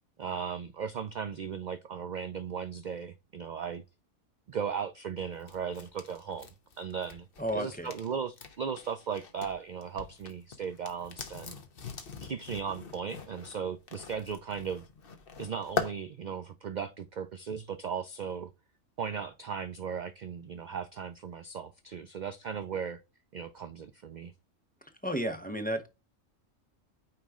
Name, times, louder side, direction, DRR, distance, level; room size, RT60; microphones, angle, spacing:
voice 1, 0.2-3.8 4.5-6.5 6.8-7.3 7.5-11.6 12.2-14.8 15.4-18.5 19.0-23.0 23.3-24.3, right 6 dB, 60° right, 0.5 m, -37 dB
sound 1, 5.2-9.5 9.8-15.9, left 5 dB, 50° left, 1.1 m, -41 dB
voice 2, 7.4-7.9 25.0-25.9, right 1 dB, 10° left, 0.9 m, -32 dB
9.0 x 3.1 x 3.6 m
omnidirectional pair, 1.3 m